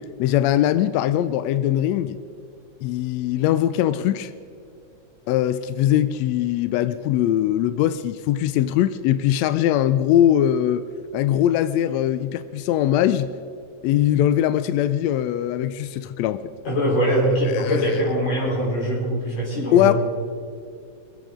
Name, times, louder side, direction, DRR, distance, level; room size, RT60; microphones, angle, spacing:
voice 1, 0.2-2.2 2.8-4.3 5.3-10.8 11.1-13.3 13.8-16.4 17.5-17.8 19.7-19.9, left 11 dB, 80° left, 12 dB, 1.6 m, -21 dB
voice 2, 16.7-19.9, equal, 60° left, -4 dB, 5.4 m, -22 dB
24.0 x 8.5 x 5.0 m, 2.4 s
omnidirectional pair, 3.4 m